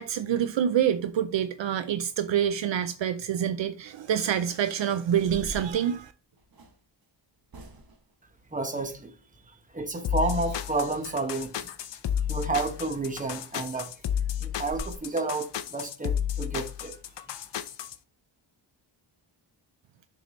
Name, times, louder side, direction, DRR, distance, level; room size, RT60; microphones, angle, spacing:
voice 1, 0.0-6.1, right 9 dB, 65° right, 0.6 m, -26 dB
sound 1, 5.0-6.8 7.5-8.1 12.7-12.8 13.2-13.3 13.7-13.8 14.2-14.3 14.6-15.0, right 2 dB, 45° right, 1.1 m, -43 dB
voice 2, 8.5-9.1 9.5-11.7 12.2-13.9 14.4-17.0, right 3 dB, 15° right, 1.0 m, -31 dB
sound 2, 10.0-18.0, left 9 dB, 60° left, 0.6 m, -32 dB
6.6 x 4.8 x 3.1 m
wide cardioid pair, 95°, 48 cm